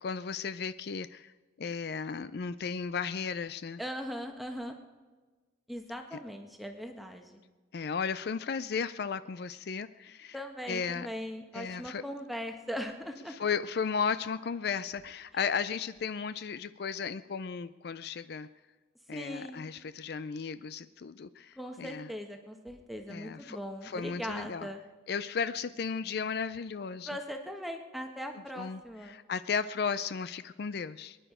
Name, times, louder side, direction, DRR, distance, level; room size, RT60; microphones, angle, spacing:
voice 1, 0.0-3.8 6.1-6.2 7.7-10.4 10.7-11.1 11.5-12.0 13.3-18.5 19.1-22.1 23.1-24.7 25.1-27.1 28.6-31.2, left 6 dB, 60° left, 14 dB, 0.4 m, -35 dB
voice 2, 3.8-4.7 5.7-7.4 10.3-13.4 19.1-19.7 21.6-24.8 27.1-29.2, equal, ahead, 4 dB, 1.3 m, -40 dB
23.0 x 10.0 x 5.0 m, 1.3 s
head